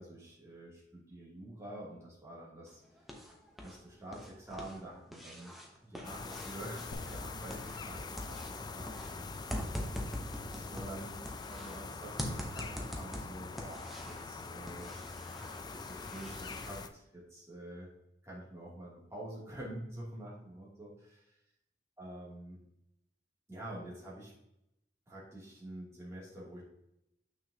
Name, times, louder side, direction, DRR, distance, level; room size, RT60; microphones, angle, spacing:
voice 1, 0.0-2.8 3.6-5.5 5.8-10.1 10.5-14.9 15.7-17.9 18.2-21.2 22.0-22.6 23.5-24.3 25.1-26.6, right 1 dB, 15° right, -7 dB, 2.7 m, -47 dB
sound 1, 2.7-3.8 4.1-7.9 8.2-11.8 12.2-14.3 14.7-16.8, equal, ahead, 0.9 m, -43 dB
sound 2, 6.0-16.9, left 4 dB, 25° left, 0.4 m, -44 dB
sound 3, 6.9-10.9, left 1 dB, 65° left, 0.8 m, -51 dB
7.0 x 6.3 x 2.8 m, 0.82 s
head